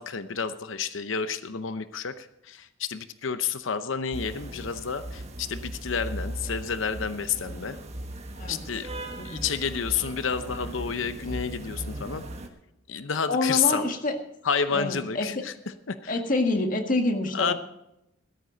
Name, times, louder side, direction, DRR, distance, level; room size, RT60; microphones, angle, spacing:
voice 1, 0.0-7.8 8.5-8.9 9.2-12.2 12.9-13.8 14.4-16.1 17.3-17.5, left 6 dB, 90° left, 11 dB, 0.8 m, -30 dB
sound 1, 4.1-12.5, right 1 dB, 35° right, 1.5 m, -38 dB
voice 2, 13.3-14.2 14.7-15.5 16.1-17.5, left 2 dB, 45° left, 4 dB, 1.8 m, -27 dB
16.0 x 13.0 x 4.0 m, 0.83 s
head